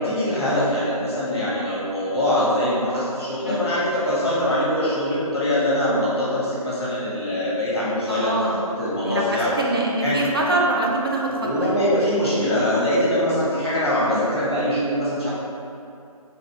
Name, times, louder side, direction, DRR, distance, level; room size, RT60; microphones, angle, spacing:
voice 1, 0.0-9.5 10.0-10.2 11.3-15.3, left 1 dB, 45° left, -8 dB, 1.1 m, -23 dB
voice 2, 8.1-8.6 9.0-11.7 14.1-14.3, right 1 dB, 40° right, -2 dB, 0.4 m, -24 dB
3.0 x 3.0 x 2.9 m, 2.6 s
figure-of-eight pair, 155°, 19 cm